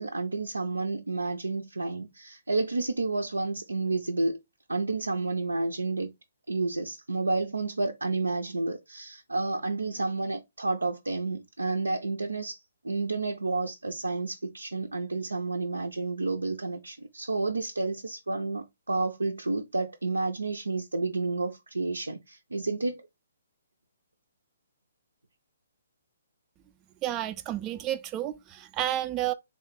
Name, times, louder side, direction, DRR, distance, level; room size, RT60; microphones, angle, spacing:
voice 1, 0.0-4.4 4.7-6.1 6.5-23.1, right 3 dB, 90° right, 0.4 m, -30 dB
voice 2, 27.0-29.3, right 13 dB, 25° right, 0.3 m, -31 dB
3.5 x 2.1 x 3.9 m
figure-of-eight pair, 135°, 0 cm